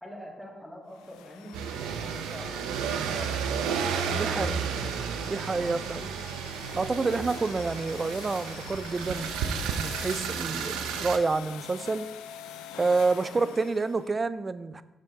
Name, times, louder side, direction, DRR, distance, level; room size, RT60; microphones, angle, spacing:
voice 1, 0.0-2.5 2.9-3.6 3.9-5.7 13.2-13.5, equal, 5° left, -3 dB, 2.7 m, -44 dB
sound 1, 0.9-14.1, left 9 dB, 85° left, 0.4 m, -46 dB
sound 2, 1.5-11.2, right 7 dB, 85° right, 0.5 m, -32 dB
voice 2, 4.1-4.5 5.2-6.1 6.7-12.1 12.7-14.8, right 3 dB, 35° right, 15 dB, 0.4 m, -28 dB
6.6 x 6.3 x 3.7 m, 1.0 s
supercardioid pair, 50°, 0 cm